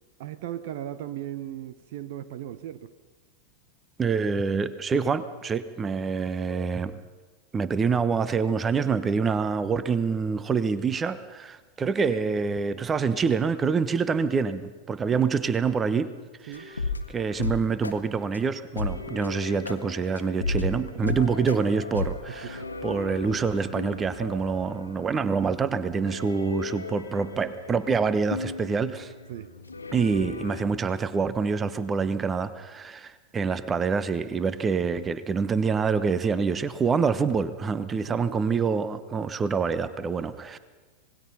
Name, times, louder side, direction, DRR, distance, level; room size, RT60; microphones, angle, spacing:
voice 1, 0.2-2.9 15.1-15.3 16.5-16.7 22.3-22.7 29.3-29.5 37.9-38.5, right 12 dB, 50° right, 14 dB, 0.9 m, -37 dB
voice 2, 4.0-7.0 7.5-16.1 16.4-16.8 17.1-29.1 29.9-40.6, right 5 dB, 20° right, 15 dB, 1.1 m, -26 dB
sound 1, 16.5-17.9 18.3-18.4 18.8-30.6, left 3 dB, 80° left, 1.5 m, -35 dB
26.5 x 19.5 x 5.7 m, 1.3 s
figure-of-eight pair, 90°, 0 cm